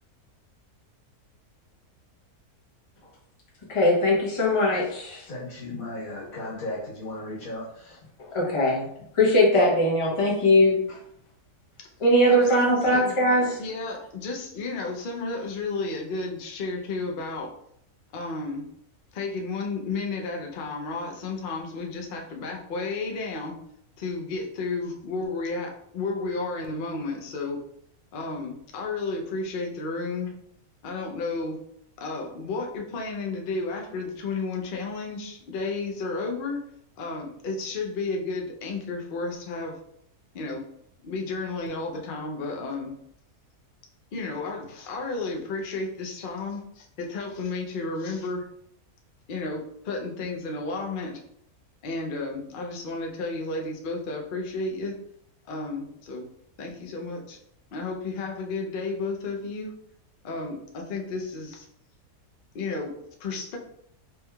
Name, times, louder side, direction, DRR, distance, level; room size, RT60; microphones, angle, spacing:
voice 1, 3.7-5.2 8.2-8.9 9.1-11.0 12.0-13.6, left 1 dB, 25° left, -5 dB, 0.8 m, -21 dB
voice 2, 5.2-8.0, left 2 dB, 70° left, -6 dB, 1.8 m, -35 dB
voice 3, 12.3-13.1 13.6-17.5 18.1-18.6 19.1-23.6 24.0-27.6 28.1-30.3 30.8-31.6 32.0-36.6 37.0-39.7 40.3-40.6 41.0-42.9 44.1-48.5 49.3-51.2 51.8-54.9 55.5-56.3 56.6-57.4 57.7-59.7 60.2-61.7 62.5-62.9 63.2-63.6, left 3 dB, 90° left, 1 dB, 0.4 m, -32 dB
3.4 x 2.9 x 2.2 m, 0.71 s
omnidirectional pair, 1.6 m